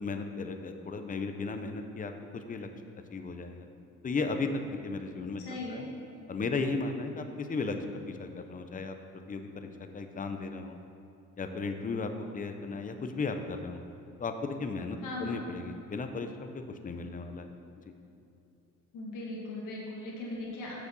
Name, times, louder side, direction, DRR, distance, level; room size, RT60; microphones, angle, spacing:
voice 1, 0.0-2.7 3.1-3.7 4.0-5.4 5.7-5.9 6.3-7.8 8.1-8.9 9.3-10.8 11.4-13.8 14.2-17.5 17.9-18.0, left 4 dB, 25° left, 6 dB, 0.7 m, -35 dB
voice 2, 5.4-5.8 15.0-15.4 18.9-20.7, left 2 dB, 90° left, -4 dB, 1.9 m, -38 dB
6.7 x 5.0 x 6.9 m, 2.7 s
cardioid pair, 90°, 30 cm